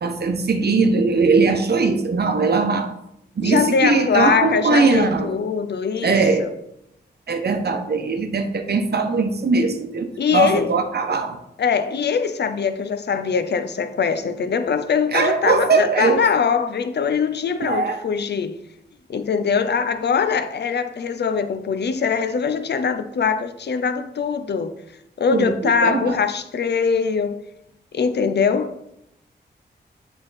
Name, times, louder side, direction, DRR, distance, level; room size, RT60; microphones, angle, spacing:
voice 1, 0.0-2.9 3.4-5.3 6.0-6.5 7.3-11.4 15.1-16.2 17.6-18.0 25.3-26.2, right 4 dB, 60° right, 0.9 m, -20 dB
voice 2, 3.4-6.5 10.2-10.7 11.6-18.6 19.1-24.8 25.2-27.4 27.9-28.8, left 6 dB, 65° left, 0.6 m, -22 dB
7.8 x 3.5 x 4.0 m
cardioid pair, 45°, 19 cm